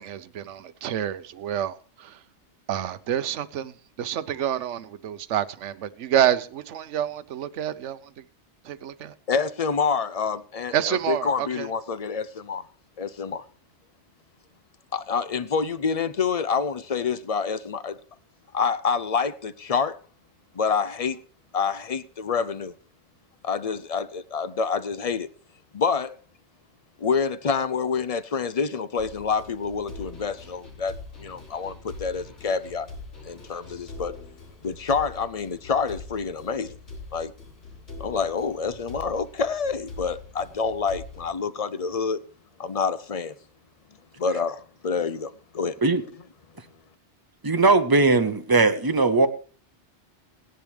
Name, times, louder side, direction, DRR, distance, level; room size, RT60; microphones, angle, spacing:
voice 1, 0.0-2.2 2.7-3.7 4.0-8.1 8.6-9.1 10.7-11.7, right 10 dB, 80° right, 1.1 m, -28 dB
voice 2, 9.3-12.6 13.0-13.4 14.9-18.0 18.5-20.0 20.5-21.2 21.5-22.7 23.4-25.3 25.7-26.2 27.0-32.9 33.2-34.2 34.6-36.8 37.1-37.3 38.0-42.2 42.6-43.3 44.2-45.8, left 5 dB, 40° left, 0.6 m, -27 dB
sound 1, 29.0-41.3, left 3 dB, 80° left, 5.1 m, -43 dB
voice 3, 47.4-49.3, right 3 dB, 20° right, 0.9 m, -19 dB
17.5 x 10.5 x 3.2 m
omnidirectional pair, 1.2 m